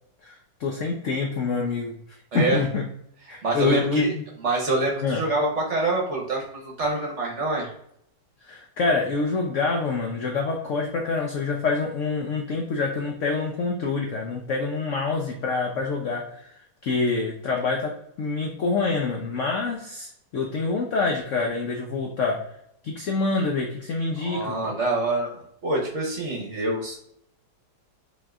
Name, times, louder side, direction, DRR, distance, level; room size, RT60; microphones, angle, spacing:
voice 1, 0.2-1.9 2.3-2.9 3.3-4.2 5.0-5.2 8.4-22.4 22.8-24.7, left 3 dB, 75° left, 1 dB, 0.7 m, -26 dB
voice 2, 3.3-4.1 4.4-7.7 24.2-27.0, right 2 dB, 50° right, -1 dB, 1.0 m, -26 dB
5.3 x 2.9 x 2.4 m, 0.73 s
omnidirectional pair, 2.0 m